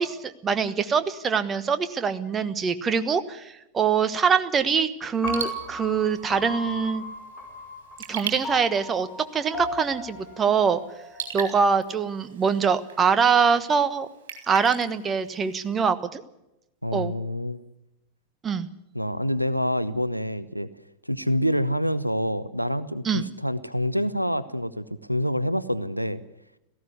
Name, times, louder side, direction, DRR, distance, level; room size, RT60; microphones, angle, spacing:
voice 1, 0.0-7.0 8.1-9.1 9.3-10.8 11.3-14.1 14.5-16.2 16.9-17.1 18.4-18.7 23.0-23.3, right 6 dB, 20° right, 12 dB, 1.3 m, -24 dB
Raindrop / Drip, 5.1-15.9, right 7 dB, 60° right, 4.0 m, -41 dB
Piano, 5.2-11.4, left 1 dB, 25° left, 5.6 m, -36 dB
voice 2, 16.8-17.6 18.9-20.7 21.1-26.2, equal, 90° right, 16 dB, 0.7 m, -27 dB
17.5 x 15.0 x 9.8 m, 0.89 s
figure-of-eight pair, 90°, 0 cm